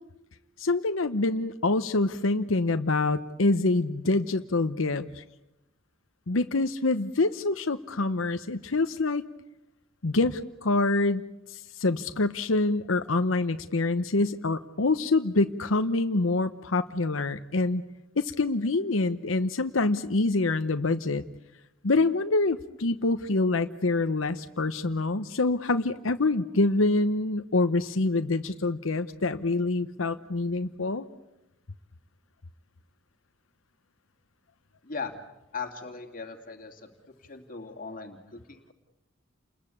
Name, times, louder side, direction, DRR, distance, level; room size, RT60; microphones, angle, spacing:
voice 1, 0.6-5.2 6.3-9.2 10.0-11.2 11.5-17.8 18.2-21.2 21.8-31.1, left 2 dB, 85° left, 8 dB, 0.9 m, -26 dB
voice 2, 34.8-35.1 35.5-36.9 37.2-38.7, left 4 dB, 45° left, 4 dB, 2.6 m, -38 dB
29.5 x 21.5 x 8.6 m, 0.92 s
head